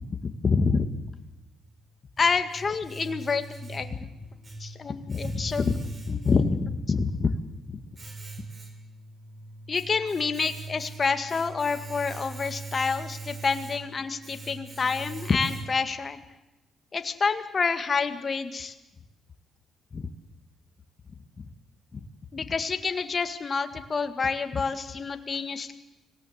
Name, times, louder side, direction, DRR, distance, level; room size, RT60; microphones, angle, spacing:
voice 1, 0.2-0.9 2.2-4.1 4.6-7.3 7.7-7.8 9.7-16.2 16.9-18.7 19.9-20.1 21.4-21.5 21.9-22.0 22.3-25.7, left 5 dB, 40° left, 9 dB, 2.0 m, -27 dB
Domestic sounds home sounds, 1.6-16.0, right 3 dB, 30° right, 3.8 m, -42 dB
25.5 x 18.0 x 8.2 m, 1.0 s
cardioid pair, 90°, 0 cm